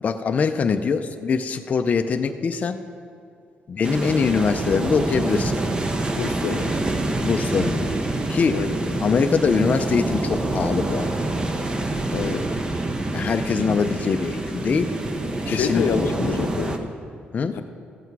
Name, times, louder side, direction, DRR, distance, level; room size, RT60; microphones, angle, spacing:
voice 1, 0.0-2.8 3.7-5.5 7.2-7.9 8.3-8.6 9.0-11.1 13.1-14.9 15.5-15.8 16.2-16.5 17.3-17.6, left 5 dB, 40° left, 6 dB, 0.5 m, -23 dB
sound 1, 3.8-16.8, right 2 dB, 25° right, 0.8 m, -26 dB
voice 2, 6.1-6.8 8.5-8.8 12.1-12.5 15.5-16.9 17.5-17.6, left 7 dB, 85° left, 7 dB, 0.7 m, -27 dB
14.5 x 7.9 x 4.7 m, 2.5 s
cardioid pair, 125°, 4 cm